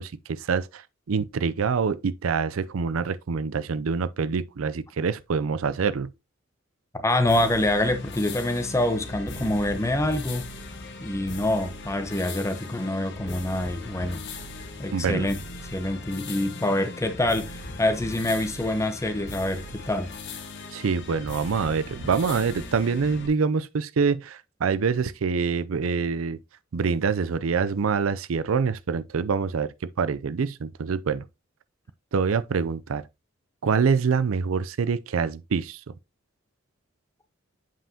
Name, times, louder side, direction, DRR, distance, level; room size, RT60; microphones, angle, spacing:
voice 1, 0.0-6.1 14.9-15.3 20.7-26.4 26.7-31.2 32.1-33.1 33.6-35.9, right 5 dB, 90° right, 0.5 m, -25 dB
voice 2, 6.9-10.5 11.0-14.2 14.8-15.4 15.7-20.1, left 1 dB, 15° left, 0.9 m, -26 dB
sound 1, 7.3-23.3, left 2 dB, 60° left, 1.3 m, -39 dB
7.5 x 5.6 x 2.8 m
head